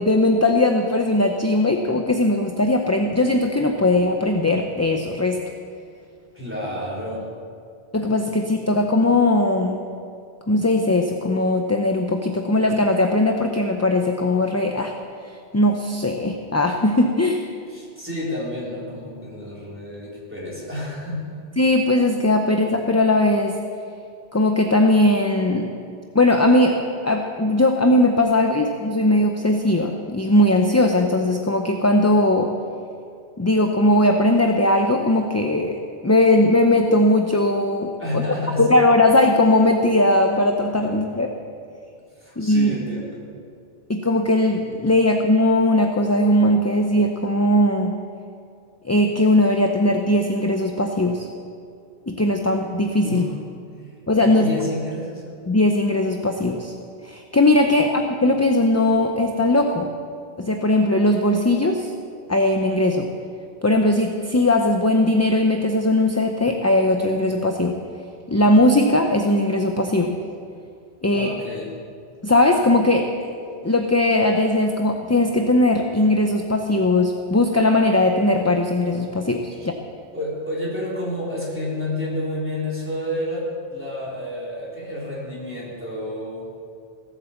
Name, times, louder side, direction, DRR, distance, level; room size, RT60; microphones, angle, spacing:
voice 1, 0.0-5.4 7.9-9.8 10.5-14.9 15.5-17.4 21.6-23.5 24.3-25.7 26.1-32.5 33.4-38.2 38.6-41.3 42.4-42.7 43.9-48.0 48.8-51.3 52.1-53.2 54.1-54.5 55.5-56.7 57.0-59.9 60.4-61.9 62.3-63.1 63.6-67.8 68.3-70.2 71.0-71.3 72.2-73.3 73.6-79.7, left 1 dB, 20° left, 4 dB, 0.6 m, -19 dB
voice 2, 6.3-7.3 17.7-21.4 38.0-38.8 41.1-41.3 42.2-43.2 53.0-53.3 54.2-55.2 71.1-71.7 79.6-79.7 80.1-86.5, left 1 dB, 10° right, -6 dB, 3.9 m, -30 dB
17.5 x 8.2 x 7.2 m, 2.4 s
omnidirectional pair, 1.1 m